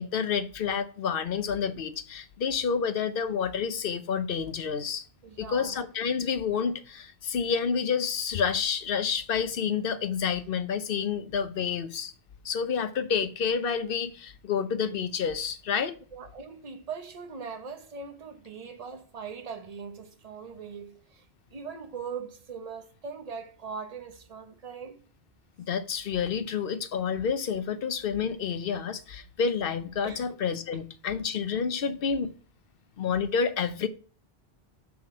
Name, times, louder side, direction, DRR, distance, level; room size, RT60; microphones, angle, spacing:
voice 1, 0.0-5.0 5.4-12.1 12.4-16.0 25.7-32.3 33.0-33.9, left 6 dB, 65° left, 0.8 m, -29 dB
voice 2, 5.2-5.8 16.1-21.3 21.5-25.0 30.0-30.2 30.7-30.8, right 5 dB, 40° right, 0.9 m, -40 dB
5.8 x 5.8 x 4.2 m
omnidirectional pair, 1.1 m